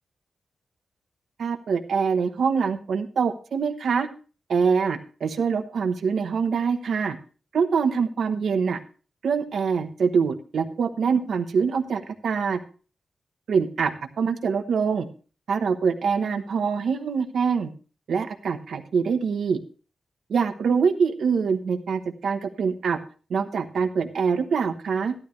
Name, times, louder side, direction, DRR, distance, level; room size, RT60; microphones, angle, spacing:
voice 1, 1.4-4.1 4.5-7.2 7.5-8.8 9.2-12.6 13.5-15.1 15.5-17.7 18.1-19.6 20.3-23.0 23.3-25.1, right 6 dB, 80° right, 8 dB, 1.0 m, -24 dB
12.0 x 11.5 x 3.1 m, 0.36 s
wide cardioid pair, 170°, 0 cm